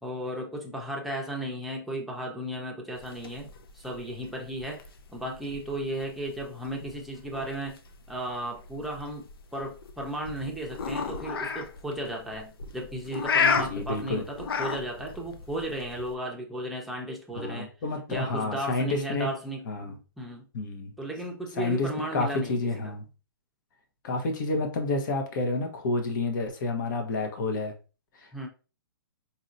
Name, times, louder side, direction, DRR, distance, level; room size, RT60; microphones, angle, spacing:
voice 1, 0.0-3.5 3.7-4.8 5.1-7.8 8.1-17.7 18.1-19.6 20.2-20.4 21.0-23.0 28.3-28.5, right 1 dB, ahead, -1 dB, 0.7 m, -35 dB
sound 1, 3.0-16.1, left 6 dB, 75° left, 0.6 m, -34 dB
voice 2, 13.7-14.2 17.3-19.3 19.7-19.9 20.5-20.9 21.6-23.0 24.0-27.7 28.2-28.5, left 3 dB, 55° left, 5 dB, 1.0 m, -29 dB
4.3 x 2.7 x 2.5 m, 0.33 s
hypercardioid pair, 145°, 12 cm